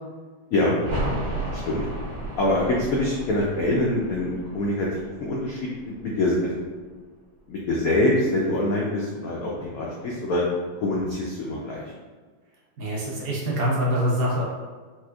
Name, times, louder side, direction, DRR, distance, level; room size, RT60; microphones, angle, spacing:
sound 1, 0.8-6.3 6.6-6.7, right 1 dB, 55° right, 1.4 m, -33 dB
voice 1, 1.5-1.8 2.4-4.9 5.2-5.6 5.9-6.5 7.5-10.4 10.8-11.8, left 1 dB, 85° left, -4 dB, 0.7 m, -24 dB
voice 2, 12.8-14.4, equal, 80° right, -5 dB, 0.5 m, -24 dB
4.2 x 2.4 x 2.3 m, 1.4 s
omnidirectional pair, 2.1 m